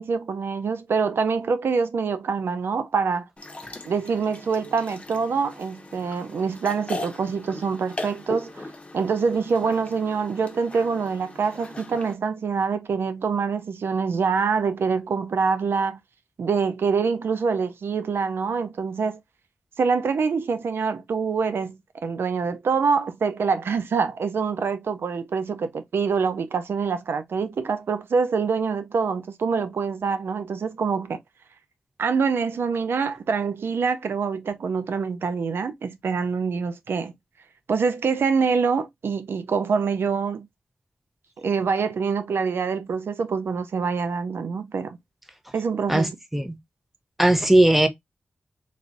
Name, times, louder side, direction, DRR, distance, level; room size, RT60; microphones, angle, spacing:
voice 1, 0.0-3.3 3.9-16.0 16.4-19.2 19.8-31.2 32.0-37.1 37.7-40.5 41.4-45.0 45.5-46.2, right 5 dB, 85° right, 0.4 m, -25 dB
sound 1, 3.4-12.1, left 2 dB, 30° left, 0.8 m, -39 dB
voice 2, 45.9-46.6 47.2-47.9, right 1 dB, 5° right, 0.7 m, -18 dB
3.2 x 2.5 x 2.4 m
cardioid pair, 65°, 4 cm